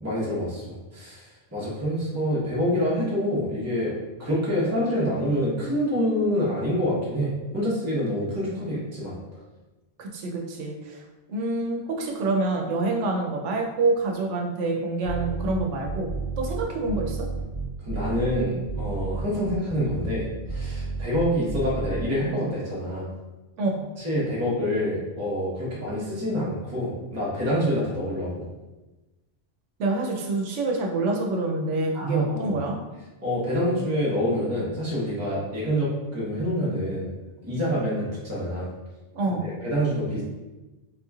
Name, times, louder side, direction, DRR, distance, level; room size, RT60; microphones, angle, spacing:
voice 1, 0.0-1.2 1.5-3.9 4.2-9.1 17.8-23.1 24.0-28.5 31.9-32.5 33.2-37.1 37.4-38.7 39.3-40.2, equal, 15° right, -7 dB, 0.8 m, -26 dB
voice 2, 10.0-11.0 11.3-16.1 16.4-17.3 23.6-23.8 29.8-32.8 39.1-39.5, right 2 dB, 85° right, 1 dB, 1.0 m, -27 dB
sound 1, 15.0-22.0, right 4 dB, 80° left, 1.2 m, -31 dB
3.8 x 2.9 x 2.3 m, 1.1 s
omnidirectional pair, 1.2 m